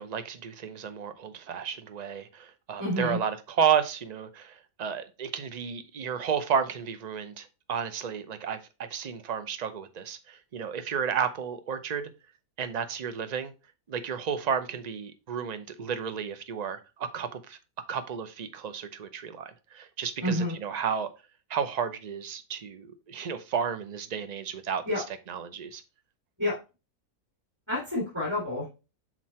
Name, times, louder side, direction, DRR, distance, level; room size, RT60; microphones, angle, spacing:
voice 1, 0.0-12.1 12.6-13.5 13.9-17.6 17.9-21.1 21.5-25.8, right 7 dB, 45° right, 0.5 m, -32 dB
voice 2, 2.8-3.2 20.2-20.5 24.8-25.0 26.4-26.6 27.7-28.7, left 1 dB, 10° right, 2.6 m, -28 dB
6.1 x 4.5 x 4.3 m
omnidirectional pair, 1.6 m